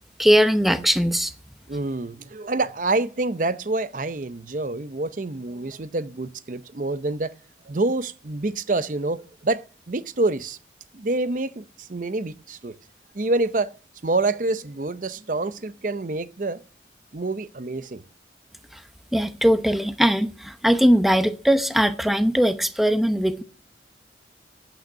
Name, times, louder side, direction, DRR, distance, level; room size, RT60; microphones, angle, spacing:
voice 1, 0.2-1.3 18.7-18.8 19.1-23.4, equal, ahead, 0.7 m, -20 dB
voice 2, 1.7-7.3 7.7-10.6 10.9-12.7 13.1-13.7 14.0-16.6 17.1-18.0, right 2 dB, 45° right, 0.7 m, -27 dB
8.9 x 8.7 x 9.2 m
head